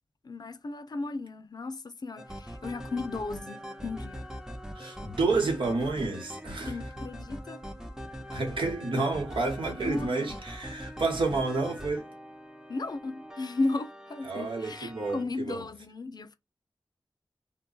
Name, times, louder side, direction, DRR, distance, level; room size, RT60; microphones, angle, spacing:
voice 1, 0.2-4.2 6.7-7.6 9.8-10.3 12.7-16.3, left 3 dB, 55° left, 0.4 m, -35 dB
sound 1, 2.2-15.2, equal, 5° right, 0.5 m, -42 dB
voice 2, 4.7-6.9 8.3-12.0 14.2-15.7, right 3 dB, 85° right, 1.1 m, -30 dB
2.2 x 2.1 x 3.8 m
cardioid pair, 50°, 8 cm